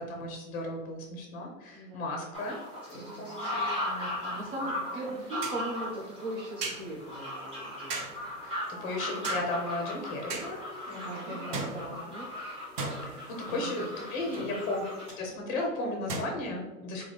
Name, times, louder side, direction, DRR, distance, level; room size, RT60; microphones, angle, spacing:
voice 1, 0.0-2.6 2.9-4.4 8.4-8.6 8.8-10.6 10.9-11.7 13.0-14.8 15.2-17.0, left 2 dB, 20° left, 2 dB, 0.6 m, -35 dB
voice 2, 1.7-2.2 2.9-3.3 4.2-8.0 11.0-12.3 13.5-14.5, right 1 dB, 55° right, -3 dB, 0.9 m, -40 dB
sound 1, 2.3-15.1, left 1 dB, 10° right, 0.9 m, -38 dB
sound 2, 4.2-4.3 5.4-5.7 6.6-7.0 7.9-8.4 9.2-9.8 10.3-10.7 11.5-12.3 12.8-13.6 14.3-14.5 15.1-15.3 16.1-16.2, right 3 dB, 85° right, 0.8 m, -37 dB
3.6 x 2.3 x 3.3 m, 1.1 s
hypercardioid pair, 135°, 46 cm